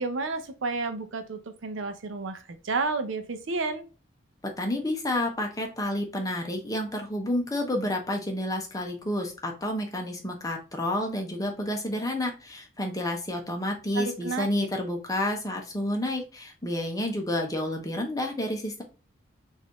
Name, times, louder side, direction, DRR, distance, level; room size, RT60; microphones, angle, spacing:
voice 1, 0.0-3.8 13.9-14.5, right 3 dB, 75° right, 8 dB, 0.6 m, -31 dB
voice 2, 4.6-18.8, left 1 dB, 20° left, 2 dB, 0.8 m, -30 dB
4.0 x 2.6 x 2.9 m, 0.33 s
head